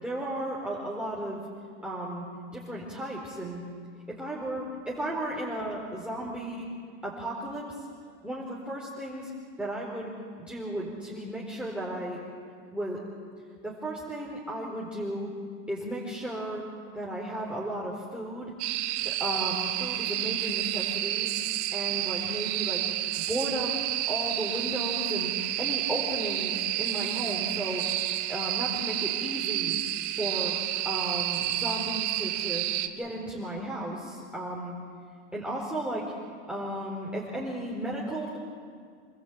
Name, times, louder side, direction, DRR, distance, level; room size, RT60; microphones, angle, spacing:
voice 1, 0.0-1.4 1.8-2.2 2.5-3.6 4.1-6.7 7.0-7.9 8.2-9.3 9.6-10.1 10.4-12.2 12.7-13.0 13.6-15.3 15.7-16.6 16.9-18.5 19.0-21.3 21.7-23.7 24.1-25.3 25.6-27.8 28.3-29.8 30.2-30.5 30.8-32.6 33.0-34.7 35.3-36.1 36.5-38.4, right 1 dB, 5° right, -5 dB, 4.5 m, -34 dB
sound 1, 18.6-32.9, right 14 dB, 70° right, 1.4 m, -30 dB
27.5 x 14.0 x 8.8 m, 2.1 s
supercardioid pair, 105°, 36 cm